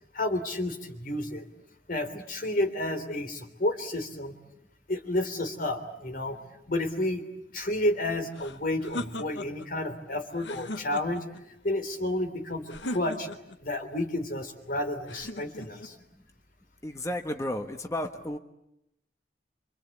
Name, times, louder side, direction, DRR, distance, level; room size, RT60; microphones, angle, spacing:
voice 1, 0.1-1.4 1.9-4.3 4.9-6.4 6.7-7.2 7.5-11.2 11.6-13.3 13.6-16.0, left 1 dB, 50° left, 9 dB, 3.2 m, -31 dB
sound 1, 8.3-9.7 10.3-11.4 12.7-13.6 15.1-15.9, left 1 dB, 85° left, 1.2 m, -38 dB
voice 2, 16.8-18.4, left 1 dB, 15° left, 5 dB, 1.3 m, -32 dB
27.0 x 26.0 x 8.4 m, 0.82 s
head